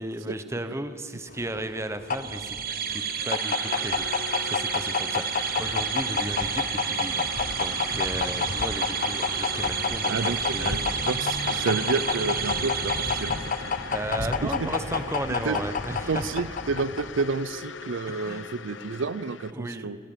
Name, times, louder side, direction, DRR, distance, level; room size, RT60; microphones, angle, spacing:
voice 1, 0.0-2.6 2.9-4.1 4.4-11.0 13.9-16.2 18.1-18.5 19.5-19.9, right 1 dB, 15° right, 9 dB, 0.9 m, -35 dB
sound 1, 1.3-17.4, left 5 dB, 45° left, 0.8 m, -30 dB
sound 2, 2.1-14.0, right 8 dB, 50° right, 1.2 m, -31 dB
sound 3, 2.5-19.5, left 6 dB, 75° left, 0.8 m, -41 dB
voice 2, 10.1-13.5 14.4-14.8 15.3-15.6 16.1-20.0, right 4 dB, 85° right, 17 dB, 0.5 m, -30 dB
24.5 x 16.5 x 7.2 m, 2.4 s
head